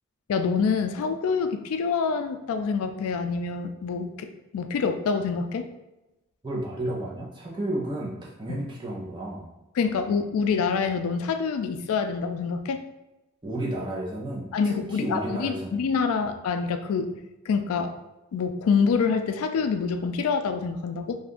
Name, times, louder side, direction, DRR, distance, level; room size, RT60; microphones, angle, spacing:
voice 1, 0.3-4.3 4.5-5.7 8.5-8.6 9.7-12.8 14.5-17.1 17.5-17.9 18.3-21.2, left 5 dB, 85° left, 7 dB, 0.3 m, -26 dB
voice 2, 6.4-8.1 8.4-9.5 13.4-15.7 16.2-16.3, right 1 dB, 20° right, -4 dB, 0.6 m, -32 dB
2.7 x 2.5 x 3.5 m, 0.99 s
head